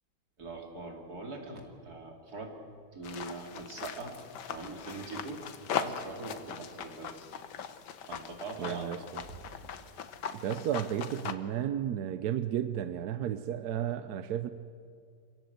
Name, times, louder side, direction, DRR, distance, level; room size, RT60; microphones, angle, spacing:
voice 1, 0.4-2.5 2.9-4.1 4.5-5.4 5.7-7.1 8.1-8.9 9.3-9.4, right 3 dB, 50° right, 1 dB, 3.3 m, -42 dB
sound 1, 3.0-11.3, left 8 dB, 60° left, 1.5 m, -40 dB
voice 2, 8.6-9.2 10.3-14.5, right 10 dB, 65° right, 11 dB, 1.0 m, -33 dB
25.5 x 17.5 x 7.9 m, 2.3 s
omnidirectional pair, 2.2 m